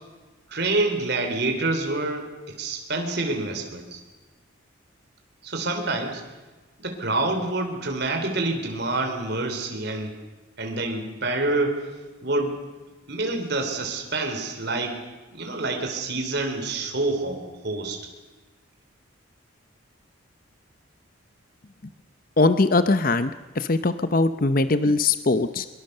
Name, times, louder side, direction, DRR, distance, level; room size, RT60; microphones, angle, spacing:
voice 1, 0.5-4.0 5.4-6.2 6.8-10.2 10.6-11.9 12.2-12.6 13.1-15.0 15.3-18.0, right 2 dB, 50° right, 4 dB, 3.6 m, -27 dB
voice 2, 22.4-25.7, left 3 dB, 45° left, 11 dB, 0.7 m, -21 dB
23.0 x 22.5 x 6.7 m, 1.2 s
head